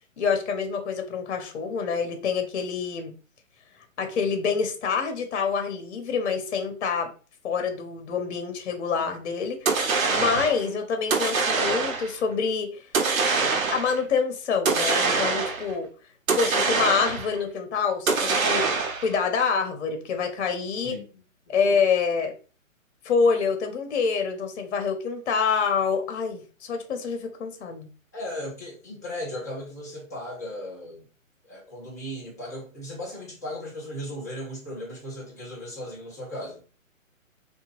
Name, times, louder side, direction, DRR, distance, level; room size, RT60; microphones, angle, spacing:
voice 1, 0.2-3.1 4.0-7.1 7.4-12.8 13.7-15.9 16.3-18.7 19.0-21.0 21.5-22.3 23.0-27.9, left 5 dB, 55° left, 6 dB, 0.7 m, -26 dB
sound 1, 9.7-10.6 11.1-12.2 12.9-14.0 14.7-15.7 16.3-17.4 18.1-19.2, right 4 dB, 80° right, 0.8 m, -24 dB
voice 2, 20.8-21.6 28.1-31.1 31.4-36.6, left 1 dB, 15° left, -5 dB, 0.4 m, -37 dB
2.8 x 2.2 x 2.9 m, 0.37 s
hypercardioid pair, 145°, 40 cm